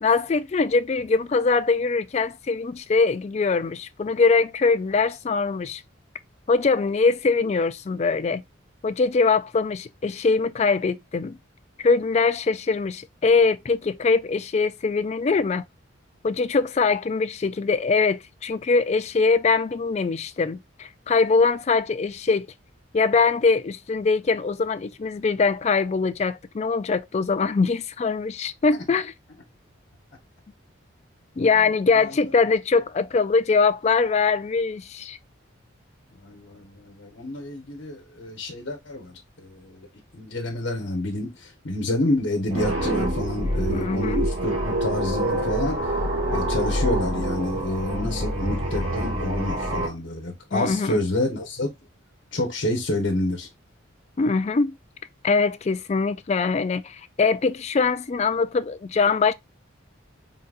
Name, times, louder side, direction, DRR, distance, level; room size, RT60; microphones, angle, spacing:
voice 1, 0.0-5.8 6.5-8.4 8.8-11.4 11.8-15.6 16.2-22.5 22.9-29.1 31.4-35.2 43.7-44.3 50.5-51.0 54.2-54.8 55.2-59.3, left 4 dB, 35° left, 0.3 m, -22 dB
voice 2, 36.2-39.9 40.1-45.8 46.3-51.7 52.3-53.5, left 1 dB, 55° left, 1.1 m, -28 dB
sound 1, 42.5-49.9, right 1 dB, 85° right, 2.2 m, -26 dB
3.9 x 3.9 x 2.4 m
head